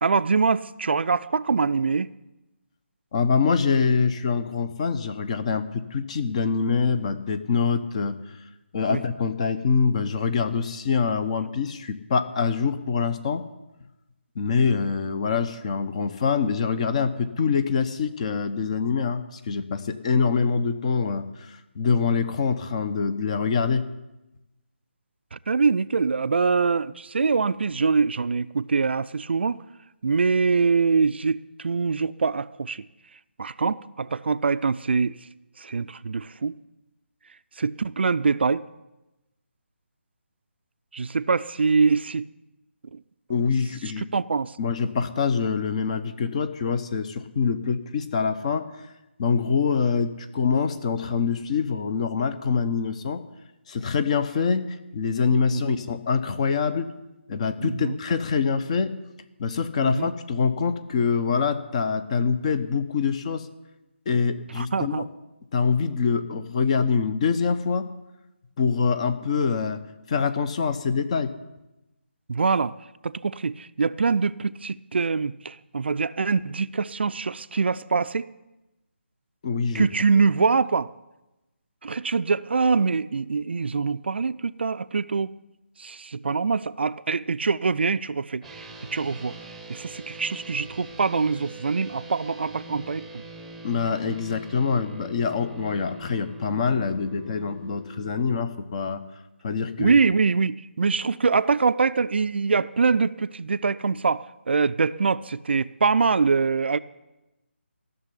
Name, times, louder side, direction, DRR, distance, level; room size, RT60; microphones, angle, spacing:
voice 1, 0.0-2.1 8.9-9.0 25.3-29.6 30.0-32.8 33.4-35.1 35.6-36.5 37.6-38.6 40.9-42.2 42.9-43.0 44.0-44.6 55.5-55.6 57.6-58.0 59.8-60.1 64.6-65.1 72.3-72.7 73.0-78.3 79.7-80.9 81.8-85.3 85.8-89.3 89.7-93.0 99.8-106.8, right 4 dB, 60° right, 14 dB, 0.5 m, -24 dB
voice 2, 3.1-8.2 8.7-13.4 14.4-23.9 43.3-44.1 44.6-48.7 49.2-53.2 53.7-56.9 57.3-59.0 59.4-63.5 64.1-65.1 65.5-67.9 68.6-69.8 70.1-71.3 79.4-79.9 93.6-99.0 99.4-100.0, left 5 dB, 30° left, 10 dB, 0.8 m, -25 dB
sound 1, 88.4-98.4, right 1 dB, ahead, 1.0 m, -43 dB
15.0 x 6.8 x 9.8 m, 0.98 s
figure-of-eight pair, 155°, 7 cm